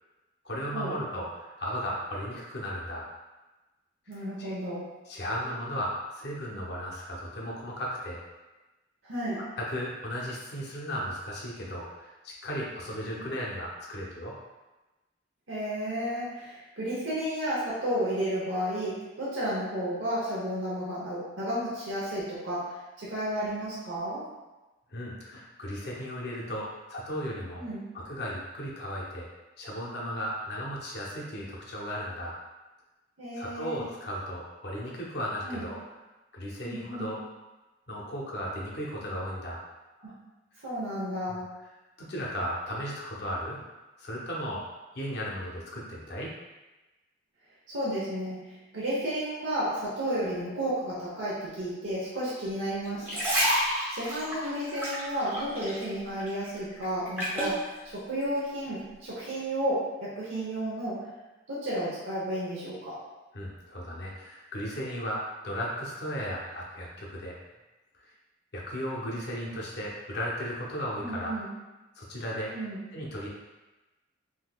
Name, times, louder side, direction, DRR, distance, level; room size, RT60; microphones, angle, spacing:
voice 1, 0.4-3.1 4.1-4.5 5.1-8.2 9.6-14.4 24.9-27.6 27.9-29.3 29.6-32.4 33.4-35.8 36.3-37.2 37.9-39.6 41.3-41.4 42.0-43.7 44.0-44.7 44.9-46.3 63.3-67.4 68.0-68.1 68.5-71.4 72.0-72.6 72.9-73.3, equal, 55° left, -3 dB, 0.6 m, -35 dB
voice 2, 4.1-4.9 9.0-9.5 15.5-24.3 27.6-27.9 33.2-33.9 35.4-35.7 36.6-37.2 40.0-40.2 40.6-41.6 47.7-53.2 53.9-61.1 61.5-63.0 71.0-71.5 72.5-72.8, right 1 dB, 80° right, -8 dB, 0.8 m, -32 dB
sound 1, 52.8-55.9 56.2-57.6 58.2-58.4, equal, 10° right, 0.7 m, -29 dB
3.7 x 2.7 x 2.2 m, 1.1 s
head